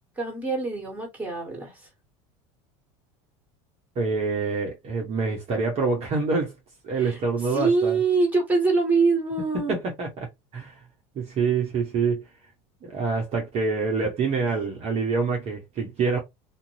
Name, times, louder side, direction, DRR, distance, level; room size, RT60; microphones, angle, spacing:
voice 1, 0.2-1.7 7.0-7.2 7.5-9.8, right 4 dB, 10° right, 1.5 m, -24 dB
voice 2, 4.0-6.5 6.8-8.0 9.7-10.3 10.5-10.8 11.1-12.2 12.8-16.2, right 4 dB, 40° right, 0.9 m, -26 dB
2.5 x 2.2 x 3.1 m
supercardioid pair, 115°, 16 cm